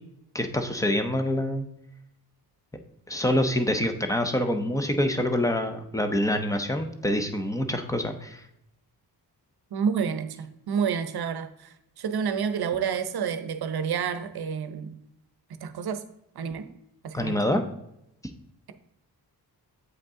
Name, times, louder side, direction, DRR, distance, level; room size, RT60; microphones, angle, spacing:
voice 1, 0.3-1.6 3.1-8.4 17.1-17.6, left 1 dB, 10° left, 0.6 m, -26 dB
voice 2, 9.7-15.0 15.6-16.0 16.3-16.7 17.0-17.4 18.7-18.8, right 7 dB, 70° right, 0.7 m, -29 dB
8.0 x 5.2 x 3.7 m
wide cardioid pair, 170°, 40 cm